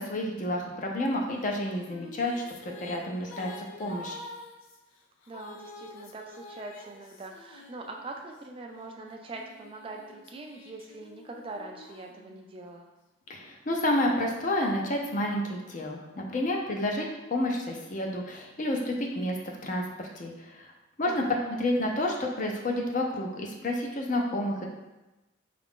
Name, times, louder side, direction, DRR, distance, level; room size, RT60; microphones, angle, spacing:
voice 1, 0.0-4.2 13.3-19.4 19.6-20.7 21.0-21.2 21.6-24.6, left 1 dB, 40° left, 1 dB, 0.5 m, -30 dB
sound 1, 1.4-8.4 9.0-12.8, left 2 dB, 85° left, 0.5 m, -48 dB
voice 2, 5.3-12.9 21.0-21.3, right 2 dB, 25° right, 2 dB, 0.3 m, -42 dB
4.7 x 2.4 x 3.6 m, 1.0 s
head